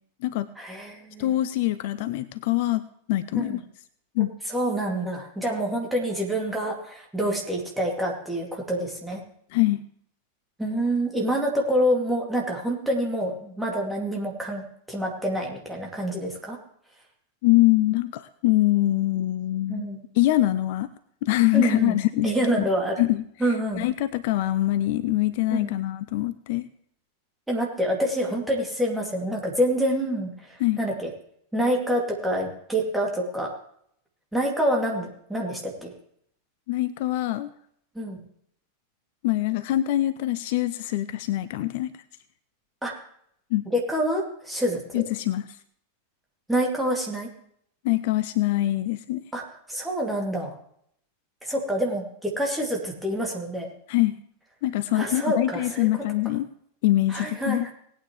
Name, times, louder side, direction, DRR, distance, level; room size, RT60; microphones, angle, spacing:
voice 1, 0.6-1.3 3.3-3.6 4.5-9.2 10.6-16.6 19.7-20.0 21.5-22.0 22.2-23.1 23.4-23.8 25.5-25.7 27.5-31.1 31.5-33.5 34.3-35.9 37.9-38.2 42.8-42.9 43.7-45.0 46.5-47.3 49.3-49.4 49.7-50.5 51.4-53.7 54.9-55.9 57.1-57.7, right 1 dB, 5° right, -1 dB, 2.7 m, -27 dB
voice 2, 1.2-3.6 4.1-4.3 9.5-9.8 17.4-19.9 20.1-20.9 21.2-22.3 22.6-22.7 23.0-26.7 30.6-30.8 36.7-37.5 39.2-41.9 43.5-43.7 44.9-45.5 47.8-49.2 53.9-54.2 54.6-56.5 56.8-57.7, left 16 dB, 50° left, 14 dB, 0.5 m, -24 dB
19.0 x 9.1 x 3.3 m, 0.68 s
figure-of-eight pair, 90°, 0 cm